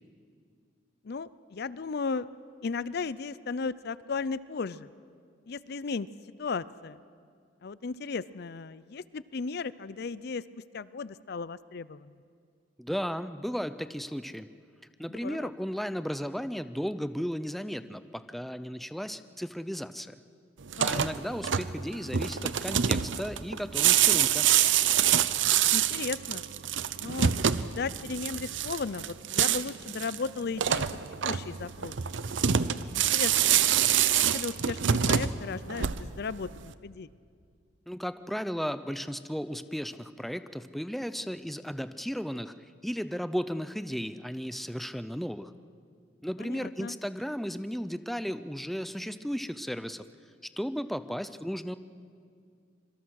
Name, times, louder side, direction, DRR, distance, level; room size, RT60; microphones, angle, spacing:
voice 1, 1.0-2.3 2.6-4.9 5.5-6.1 6.4-7.0 7.6-12.1 15.1-15.5 20.8-21.1 25.7-26.4 27.0-30.9 31.2-32.0 32.9-33.3 34.3-37.1 46.4-47.0, left 4 dB, 60° left, 17 dB, 0.5 m, -35 dB
voice 2, 12.8-14.5 15.0-20.2 20.8-24.5 37.9-42.5 42.8-45.5 46.2-50.0 50.6-51.8, equal, ahead, 12 dB, 0.5 m, -35 dB
sound 1, 20.6-36.3, right 9 dB, 80° right, 0.7 m, -26 dB
25.5 x 23.5 x 6.4 m, 2.2 s
head